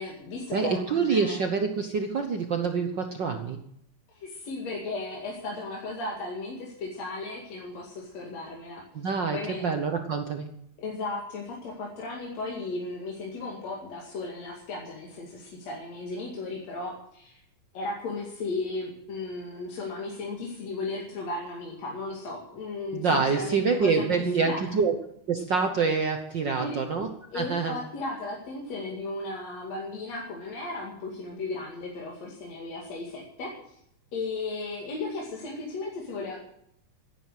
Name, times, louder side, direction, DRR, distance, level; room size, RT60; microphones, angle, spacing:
voice 1, 0.0-1.4 4.1-9.8 10.8-17.4 17.7-24.7 26.5-26.8 27.3-33.8 34.1-36.4, left 3 dB, 60° left, -2 dB, 3.4 m, -35 dB
voice 2, 0.5-3.6 8.9-10.6 22.9-24.9 25.3-27.1 27.3-27.8, right 5 dB, 65° right, 5 dB, 1.1 m, -26 dB
15.5 x 11.0 x 7.6 m, 0.73 s
omnidirectional pair, 3.6 m